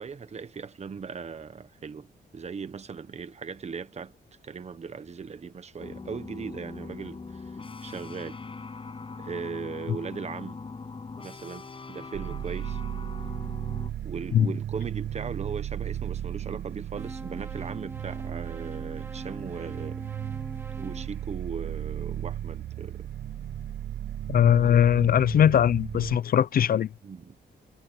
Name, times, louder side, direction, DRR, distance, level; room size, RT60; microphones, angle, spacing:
voice 1, 0.0-4.1 4.4-8.4 9.2-10.6 11.2-12.8 14.0-20.1 20.8-23.1 27.0-27.4, right 5 dB, 35° right, 1.2 m, -38 dB
sound 1, 5.8-13.9, left 4 dB, 30° left, 7.8 m, -41 dB
sound 2, 12.1-26.2, right 11 dB, 70° right, 0.7 m, -35 dB
sound 3, 17.0-22.1, right 2 dB, 10° right, 3.6 m, -43 dB
voice 2, 24.3-26.9, left 9 dB, 55° left, 0.5 m, -20 dB
wide cardioid pair, 135°, 18 cm